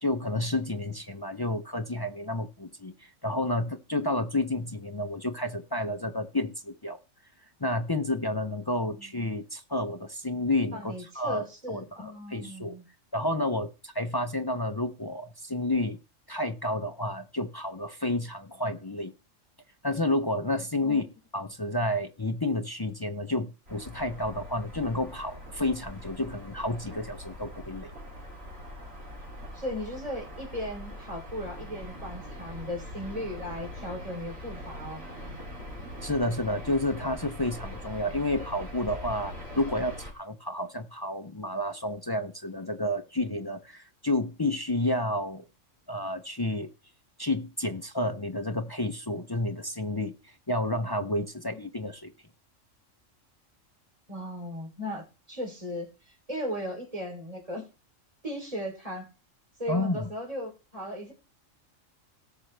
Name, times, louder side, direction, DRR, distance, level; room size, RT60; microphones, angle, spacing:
voice 1, 0.0-7.0 7.6-12.8 13.1-16.0 16.3-19.1 19.8-21.1 21.3-27.9 36.0-45.4 45.9-46.7 47.2-50.2 50.5-52.1 59.7-60.1, left 1 dB, 30° left, 0.4 m, -30 dB
voice 2, 10.7-12.9 20.8-21.0 29.5-35.0 51.5-51.6 54.1-57.7 58.2-59.1 59.6-61.1, equal, 25° right, 3.6 m, -37 dB
sound 1, 23.7-40.1, left 1 dB, 50° right, 3.5 m, -42 dB
18.0 x 6.3 x 3.3 m
omnidirectional pair, 1.3 m